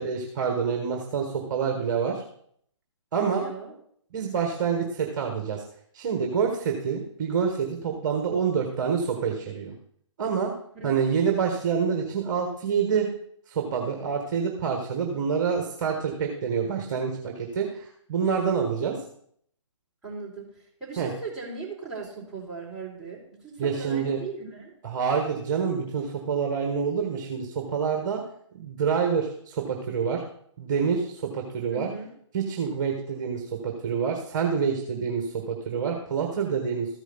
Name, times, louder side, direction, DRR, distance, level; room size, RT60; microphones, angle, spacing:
voice 1, 0.0-2.2 3.1-3.4 4.1-5.6 5.9-9.7 10.2-10.5 10.8-13.1 13.5-19.0 21.0-21.1 23.6-24.2 24.8-28.2 28.5-30.2 30.6-31.9 32.3-36.9, right 6 dB, 40° right, 2 dB, 1.4 m, -27 dB
voice 2, 3.2-3.7 10.7-10.9 20.0-20.5 20.8-24.7 31.7-32.1, right 4 dB, ahead, -10 dB, 3.5 m, -38 dB
14.0 x 5.0 x 4.0 m, 0.64 s
figure-of-eight pair, 140°, 16 cm